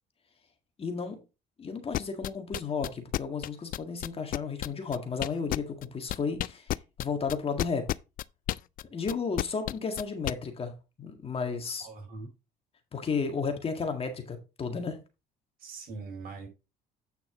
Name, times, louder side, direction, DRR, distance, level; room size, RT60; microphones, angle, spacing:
voice 1, 0.8-1.2 1.6-7.9 8.9-10.7 11.0-11.9 12.9-15.0, left 5 dB, 35° left, 1.8 m, -33 dB
sound 1, 1.9-5.8 6.1-10.3, left 14 dB, 55° left, 0.4 m, -31 dB
voice 2, 11.8-12.3 15.6-16.5, right 4 dB, 60° right, 4.6 m, -41 dB
8.9 x 5.8 x 3.8 m
cardioid pair, 110°, 17 cm